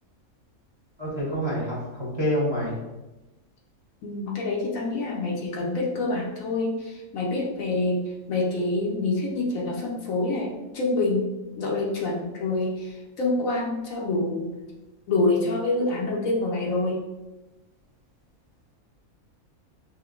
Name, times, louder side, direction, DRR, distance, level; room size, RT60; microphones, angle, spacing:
voice 1, 1.0-2.7, equal, 25° right, -7 dB, 0.7 m, -27 dB
voice 2, 4.0-11.3 11.6-14.5 15.1-17.0, left 2 dB, 65° left, -2 dB, 1.1 m, -26 dB
5.8 x 2.2 x 2.4 m, 1.1 s
omnidirectional pair, 1.6 m